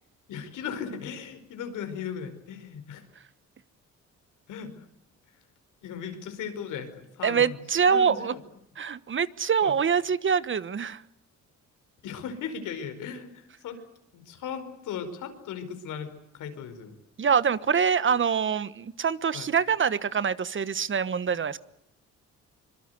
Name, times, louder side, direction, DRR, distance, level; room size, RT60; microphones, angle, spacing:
voice 1, 0.3-3.0 4.5-4.8 5.8-7.6 7.9-8.4 9.6-9.7 12.0-13.8 14.1-16.9 19.3-19.5, left 7 dB, 85° left, 8 dB, 5.0 m, -37 dB
voice 2, 7.2-8.3 8.8-11.0 17.2-21.6, right 6 dB, 40° right, 16 dB, 1.3 m, -25 dB
25.0 x 23.0 x 8.1 m, 0.79 s
cardioid pair, 90°, 30 cm